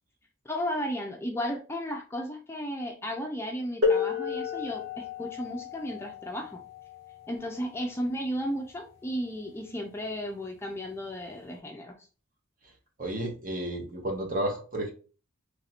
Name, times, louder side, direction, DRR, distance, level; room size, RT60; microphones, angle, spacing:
voice 1, 0.5-6.6 7.3-11.9, equal, 10° left, 1 dB, 0.4 m, -34 dB
sound 1, 3.8-9.3 10.3-10.4 11.2-11.4, left 5 dB, 55° right, 1.8 m, -32 dB
voice 2, 13.0-14.9, right 1 dB, 40° right, 2 dB, 0.9 m, -32 dB
3.2 x 2.6 x 4.2 m, 0.36 s
head